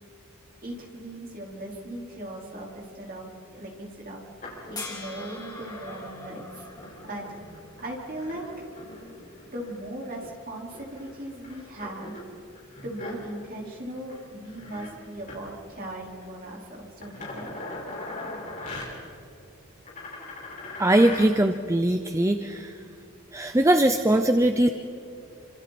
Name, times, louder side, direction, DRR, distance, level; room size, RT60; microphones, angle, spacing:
voice 1, 0.6-3.3 3.5-4.2 4.7-6.7 7.1-7.3 7.8-8.7 9.5-12.1 12.8-17.5, right 1 dB, 40° right, -2 dB, 4.5 m, -38 dB
sound 1, 4.4-10.3 10.7-13.7 13.9-14.2 14.5-14.9 15.2-15.4 16.1-16.2 17.0-18.8 19.9-21.3 22.5-22.6, left 2 dB, 35° left, 6.0 m, -41 dB
sound 2, 4.8-8.0 10.0-10.1, left 3 dB, 15° left, 3.1 m, -42 dB
voice 2, 20.8-22.7 23.3-24.7, right 1 dB, 15° right, 7 dB, 0.6 m, -21 dB
29.5 x 26.5 x 4.3 m, 2.7 s
head